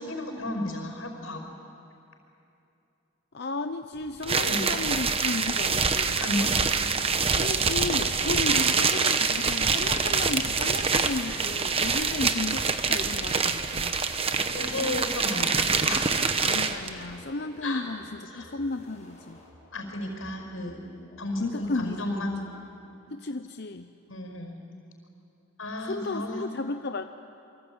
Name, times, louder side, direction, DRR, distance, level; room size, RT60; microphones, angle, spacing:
voice 1, 0.0-1.6 4.4-4.6 6.2-6.5 8.4-8.6 14.5-16.3 17.6-17.8 18.3-18.5 19.7-20.8 21.2-22.4 24.1-24.5 25.6-26.4, left 1 dB, 90° left, 4 dB, 5.3 m, -33 dB
voice 2, 3.3-6.2 7.3-14.0 16.4-19.4 21.4-22.2 23.1-23.9 25.8-27.1, left 3 dB, 50° left, 7 dB, 0.7 m, -34 dB
sound 1, 4.2-16.9, right 5 dB, 30° right, 1.1 m, -25 dB
sound 2, 9.7-22.5, equal, 35° left, 6.9 m, -52 dB
28.0 x 24.0 x 8.8 m, 2.7 s
head